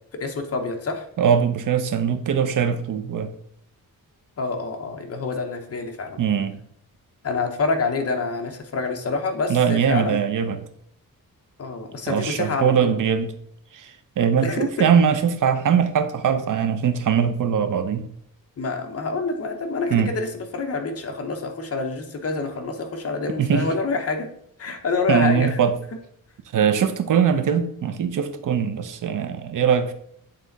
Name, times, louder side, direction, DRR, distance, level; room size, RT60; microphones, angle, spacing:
voice 1, 0.2-1.1 4.4-6.2 7.2-10.2 11.6-12.9 14.4-14.9 18.6-24.3 24.6-25.6, left 3 dB, 45° left, 1.0 m, -27 dB
voice 2, 1.2-3.3 6.2-6.6 9.5-10.6 12.1-13.3 13.7-18.1 19.9-20.1 23.4-23.7 25.1-25.7 26.5-29.9, right 7 dB, 60° right, 0.7 m, -21 dB
8.4 x 3.5 x 4.0 m
wide cardioid pair, 140°, 35 cm